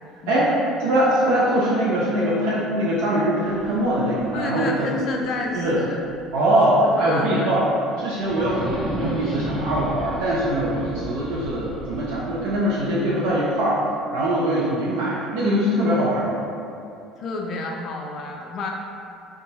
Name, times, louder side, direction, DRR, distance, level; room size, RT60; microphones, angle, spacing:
voice 1, 0.2-0.6 4.3-6.0 6.8-7.5 8.5-8.7 17.2-18.7, left 3 dB, 50° left, 1 dB, 0.3 m, -30 dB
voice 2, 0.8-4.9 5.5-5.8 6.3-7.6 8.0-13.8 14.1-16.5, right 1 dB, 65° right, -7 dB, 0.4 m, -22 dB
sound 1, 3.4-6.3 6.7-6.8 8.2-13.3, equal, 15° right, 0.6 m, -35 dB
2.6 x 2.3 x 2.8 m, 2.6 s
figure-of-eight pair, 60°, 0 cm